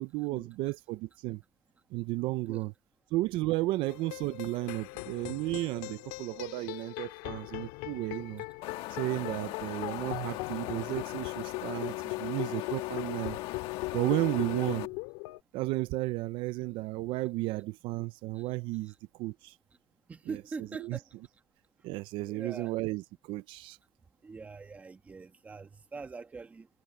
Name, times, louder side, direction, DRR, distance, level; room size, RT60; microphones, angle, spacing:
voice 1, 0.0-1.4 1.9-2.7 3.1-8.4 8.9-13.4 13.9-14.9 15.5-19.5 20.3-20.4 20.8-21.0 21.8-23.8, right 19 dB, 55° right, 0.5 m, -33 dB
sound 1, 3.9-15.4, left 25 dB, 85° left, 2.4 m, -39 dB
Wind, 8.6-14.9, left 16 dB, 55° left, 1.5 m, -40 dB
voice 2, 20.1-21.0 22.3-22.7 24.2-26.7, right 4 dB, 15° right, 1.4 m, -43 dB
cardioid pair, 175°, 10 cm